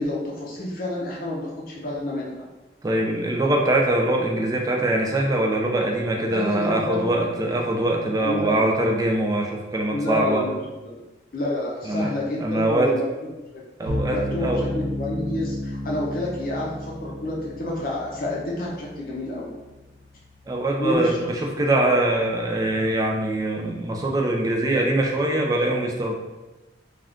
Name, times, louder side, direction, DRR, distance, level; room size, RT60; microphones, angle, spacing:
voice 1, 0.0-2.3 6.3-7.1 8.2-9.0 9.9-10.5 10.8-11.0 11.3-13.6 14.1-14.5 14.7-19.5 20.8-21.3 22.0-22.1, left 1 dB, 50° left, -3 dB, 0.5 m, -29 dB
voice 2, 2.8-10.4 11.8-12.1 12.4-12.9 13.8-14.6 20.5-26.1, right 1 dB, 20° right, 0 dB, 0.4 m, -23 dB
sound 1, 13.9-21.0, left 1 dB, 85° right, 0.4 m, -33 dB
2.5 x 2.3 x 3.4 m, 1.1 s
head